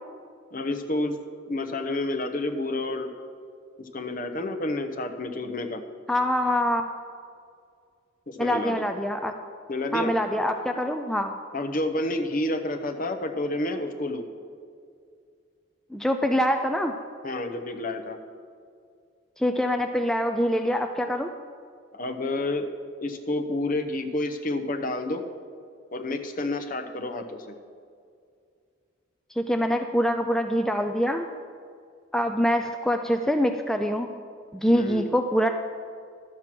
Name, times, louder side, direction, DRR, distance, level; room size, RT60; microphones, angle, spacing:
voice 1, 0.5-1.2 1.5-3.1 3.8-5.8 8.3-8.9 9.7-10.1 11.5-14.2 17.2-18.2 21.9-22.7 23.0-25.2 25.9-27.6 34.7-35.1, left 2 dB, 45° left, 6 dB, 0.9 m, -29 dB
voice 2, 6.1-6.9 8.4-9.3 9.9-11.3 15.9-16.9 19.4-21.3 29.4-31.3 32.1-34.1 34.5-35.5, equal, 5° left, 5 dB, 0.4 m, -24 dB
11.5 x 7.5 x 6.0 m, 2.3 s
head